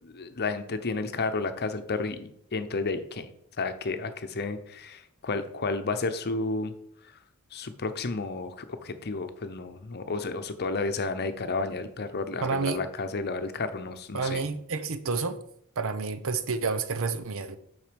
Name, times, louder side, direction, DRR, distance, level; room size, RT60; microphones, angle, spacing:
voice 1, 0.0-3.3 3.6-6.7 7.1-7.2 7.5-14.4, left 3 dB, 45° left, 0.8 m, -32 dB
voice 2, 12.4-12.8 14.1-15.4 15.8-17.6, right 4 dB, 65° right, 0.8 m, -29 dB
7.6 x 5.8 x 5.2 m
head